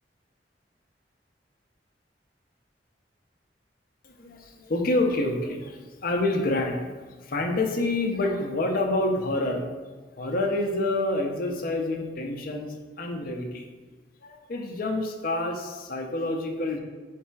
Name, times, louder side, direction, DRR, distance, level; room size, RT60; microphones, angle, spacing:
voice 1, 4.0-6.9 7.2-9.7 10.2-13.6 14.2-16.8, left 2 dB, 55° left, 3 dB, 0.6 m, -27 dB
3.5 x 3.3 x 4.5 m, 1.4 s
head